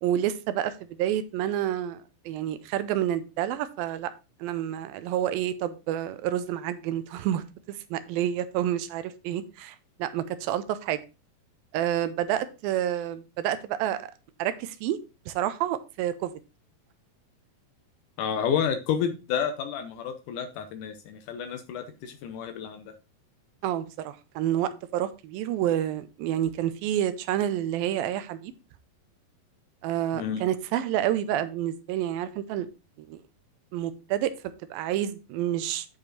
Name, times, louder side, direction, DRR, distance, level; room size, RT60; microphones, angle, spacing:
voice 1, 0.0-4.1 4.4-11.0 11.7-14.1 14.4-15.0 15.3-16.3 23.6-28.5 29.8-32.7 33.1-33.2 33.7-34.3 34.7-35.9, right 11 dB, 80° right, 12 dB, 2.4 m, -29 dB
voice 2, 18.2-22.9 30.1-30.4, left 7 dB, 75° left, 7 dB, 2.1 m, -30 dB
8.7 x 5.4 x 3.9 m, 0.29 s
omnidirectional pair, 4.2 m